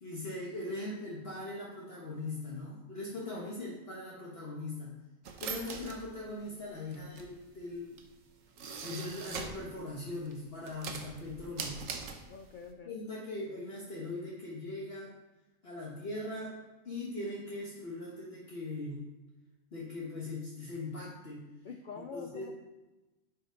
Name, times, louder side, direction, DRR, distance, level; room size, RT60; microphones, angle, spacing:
voice 1, 0.0-5.0 5.4-8.0 8.8-11.8 12.8-15.1 15.6-16.5 16.8-19.0 19.7-21.4 22.1-22.5, left 2 dB, 50° left, -5 dB, 1.4 m, -40 dB
sound 1, 5.3-9.7 10.1-12.7, right 5 dB, 70° right, 1.2 m, -42 dB
voice 2, 12.3-13.0 21.6-22.5, left 5 dB, 75° left, 6 dB, 0.4 m, -46 dB
9.4 x 5.5 x 3.8 m, 1.1 s
omnidirectional pair, 1.4 m